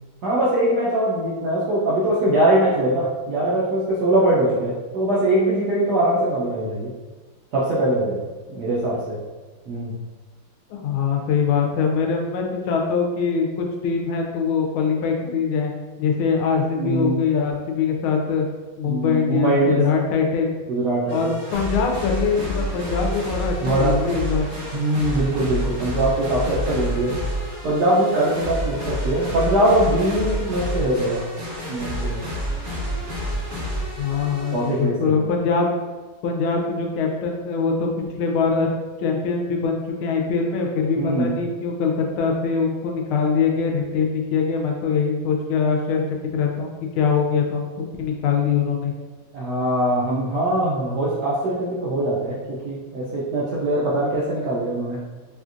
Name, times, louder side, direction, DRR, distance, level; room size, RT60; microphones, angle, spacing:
voice 1, 0.2-6.9 7.5-9.2 9.7-9.9 16.8-17.2 18.8-19.9 20.7-21.3 23.6-24.0 24.7-27.1 27.6-31.2 31.7-32.3 34.5-35.2 41.0-41.3 49.3-55.0, right 1 dB, 75° right, -7 dB, 0.9 m, -22 dB
voice 2, 10.7-15.7 16.0-18.5 18.8-20.5 21.1-24.5 34.0-35.7 36.2-38.7 39.0-48.9, left 5 dB, 80° left, 1 dB, 1.4 m, -23 dB
sound 1, 21.1-34.8, equal, 45° right, 1.4 m, -29 dB
4.3 x 2.4 x 2.5 m, 1.3 s
omnidirectional pair, 2.3 m